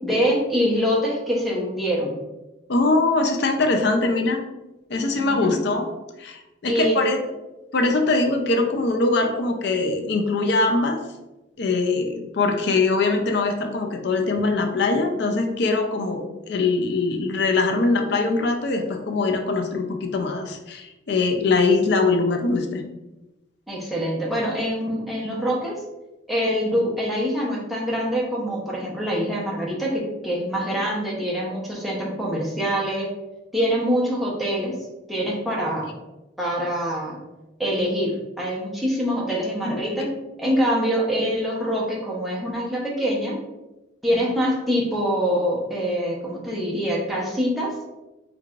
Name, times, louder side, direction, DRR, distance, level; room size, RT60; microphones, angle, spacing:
voice 1, 0.0-2.2 5.1-5.5 6.7-7.0 23.7-25.7 26.3-33.1 33.5-34.8 35.1-35.9 36.4-37.2 37.6-40.1 40.4-43.4 44.0-47.7, equal, ahead, -5 dB, 0.7 m, -24 dB
voice 2, 2.7-4.4 4.9-5.9 6.2-7.2 7.7-11.0 11.6-22.8 39.6-39.8, left 3 dB, 60° left, 4 dB, 0.4 m, -22 dB
4.6 x 2.4 x 2.4 m, 1.0 s
head